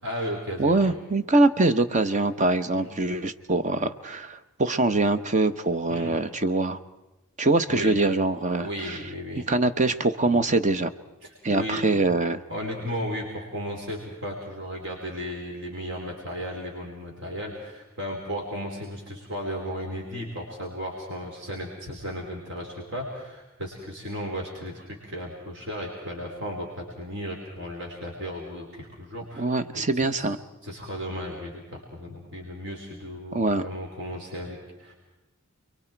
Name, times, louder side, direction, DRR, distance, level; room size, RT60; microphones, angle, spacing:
voice 1, 0.0-1.0 2.7-2.9 5.9-6.2 7.7-8.0 8.6-9.5 10.2-10.4 11.2-12.0 12.5-30.3 30.6-34.9, equal, 60° right, -2 dB, 4.4 m, -35 dB
voice 2, 0.6-6.8 7.4-9.0 9.5-10.9 11.4-12.4 29.4-30.4 33.3-33.6, right 2 dB, 35° right, 11 dB, 0.9 m, -23 dB
29.5 x 23.0 x 4.6 m, 1.1 s
head